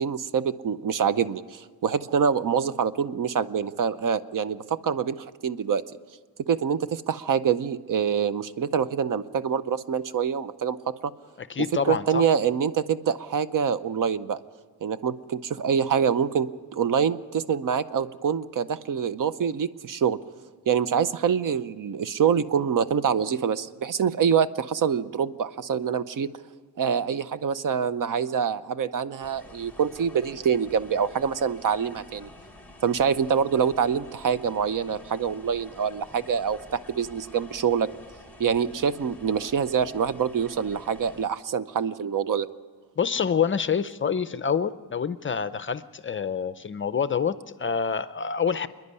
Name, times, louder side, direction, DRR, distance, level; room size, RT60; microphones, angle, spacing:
voice 1, 0.0-5.1 5.4-5.8 6.5-10.8 11.9-14.4 14.8-20.2 20.7-26.3 26.8-32.3 32.8-37.9 38.4-42.5, right 7 dB, 60° right, 14 dB, 0.7 m, -25 dB
voice 2, 11.4-12.2 43.0-48.7, left 6 dB, 30° left, 14 dB, 0.5 m, -27 dB
sound 1, 29.2-41.3, left 2 dB, 5° left, 1.3 m, -49 dB
26.5 x 10.5 x 9.6 m, 1.5 s
wide cardioid pair, 145°, 38 cm